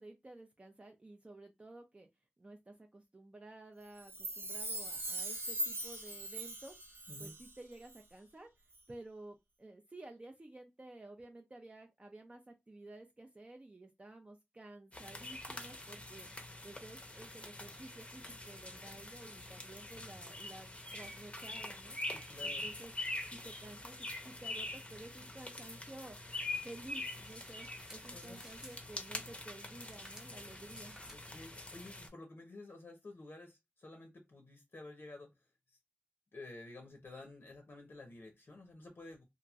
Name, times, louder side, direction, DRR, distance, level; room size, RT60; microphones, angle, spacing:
voice 1, 0.0-2.1 2.4-6.7 7.2-8.5 8.9-22.0 22.4-22.9 23.3-26.2 26.6-31.0, right 2 dB, 30° right, 0.5 m, -53 dB
Chime, 4.0-7.6 7.9-8.0, right 1 dB, 75° right, 0.8 m, -41 dB
sound 1, 14.9-32.1, left 2 dB, 30° left, 0.6 m, -45 dB
voice 2, 22.1-22.6 28.1-28.4 31.1-35.3 36.3-39.2, left 2 dB, 70° left, 0.7 m, -51 dB
sound 2, 27.1-28.8 29.9-31.2, equal, 15° right, 0.9 m, -57 dB
2.9 x 2.5 x 2.4 m
wide cardioid pair, 80°, 4 cm